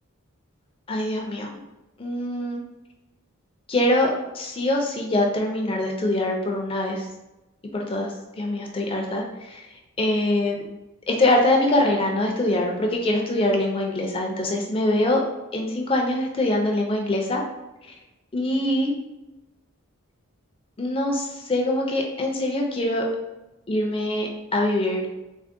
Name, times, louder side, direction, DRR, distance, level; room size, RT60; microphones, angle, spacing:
voice 1, 0.9-1.5 2.0-2.6 3.7-7.1 7.7-9.7 10.0-10.6 11.1-15.2 15.5-17.4 17.9-18.0 18.3-18.9 20.8-23.0 23.7-25.0, left 1 dB, 25° left, 1 dB, 0.4 m, -23 dB
3.5 x 2.1 x 3.6 m, 1.0 s
head